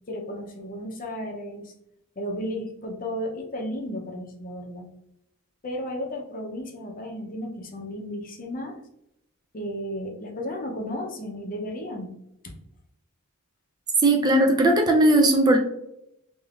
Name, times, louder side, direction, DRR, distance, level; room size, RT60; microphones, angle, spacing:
voice 1, 0.1-1.7 2.2-4.8 5.6-8.8 9.5-12.1, equal, 40° left, 2 dB, 0.6 m, -33 dB
voice 2, 14.0-15.6, right 1 dB, 20° right, 1 dB, 0.3 m, -18 dB
3.4 x 2.5 x 2.4 m, 0.79 s
head